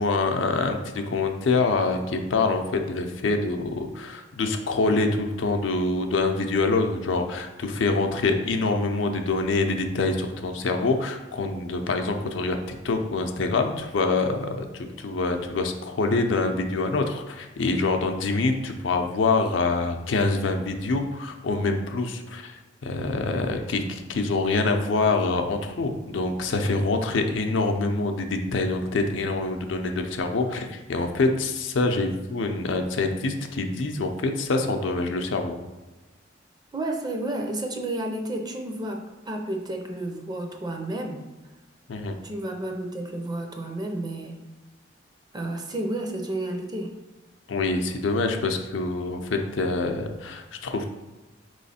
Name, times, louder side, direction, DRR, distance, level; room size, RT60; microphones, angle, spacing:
voice 1, 0.0-12.6 12.8-22.5 22.8-35.6 41.9-42.1 47.5-50.9, left 3 dB, 75° left, 5 dB, 0.5 m, -25 dB
voice 2, 36.7-41.3 42.2-44.4 45.3-46.9, right 1 dB, 20° right, 3 dB, 0.5 m, -31 dB
4.1 x 3.1 x 4.1 m, 1.1 s
head